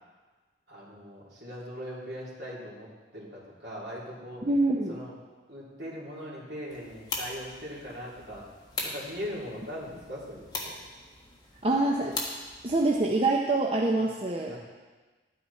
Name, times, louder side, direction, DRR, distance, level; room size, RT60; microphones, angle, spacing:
voice 1, 0.7-4.5 4.9-5.1 5.5-8.5 8.8-10.7 13.9-14.0 14.5-14.6, equal, 65° right, -6 dB, 3.3 m, -40 dB
voice 2, 4.4-4.9 11.6-12.2 12.6-14.5, right 2 dB, 30° right, -1 dB, 0.7 m, -25 dB
sound 1, 6.7-13.1, left 2 dB, 20° left, 1.5 m, -40 dB
11.5 x 9.5 x 4.2 m, 1.3 s
head